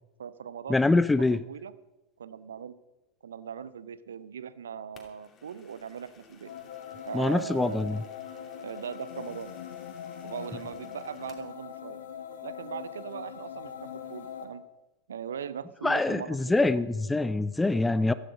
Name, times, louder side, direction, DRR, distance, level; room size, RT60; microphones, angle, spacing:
voice 1, 0.2-1.7 2.2-2.8 3.2-6.5 7.1-8.0 8.6-9.5 10.2-12.0 12.4-14.6 15.1-16.8, right 7 dB, 65° right, 17 dB, 0.8 m, -40 dB
voice 2, 0.7-1.4 7.1-8.0 15.8-18.1, left 2 dB, 10° left, 14 dB, 0.5 m, -24 dB
sound 1, 4.9-11.5, left 5 dB, 25° left, 2.7 m, -56 dB
sound 2, 6.4-14.4, left 9 dB, 60° left, 2.1 m, -42 dB
15.5 x 13.5 x 5.1 m, 1.0 s
figure-of-eight pair, 90°, 0 cm